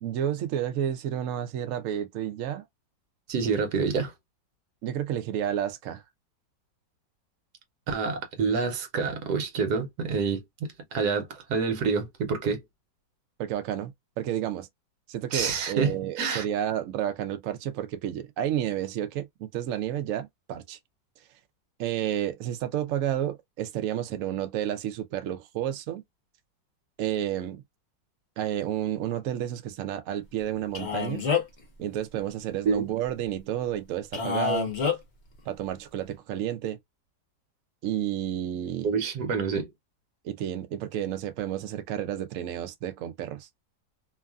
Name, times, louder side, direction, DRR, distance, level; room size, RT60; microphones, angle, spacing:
voice 1, 0.0-2.6 4.8-6.0 13.4-14.7 15.1-20.8 21.8-26.0 27.0-27.6 28.4-31.2 31.8-34.7 35.5-36.8 37.8-38.9 40.2-43.6, right 11 dB, 85° right, 0.7 m, -31 dB
voice 2, 3.3-4.1 7.9-10.4 10.9-12.6 15.3-16.4 32.7-32.9 38.8-39.7, right 5 dB, 65° right, 1.3 m, -27 dB
Male speech man speaking, 30.7-31.6 34.1-35.0, left 6 dB, 45° left, 0.9 m, -27 dB
3.1 x 2.4 x 2.2 m
omnidirectional pair, 2.0 m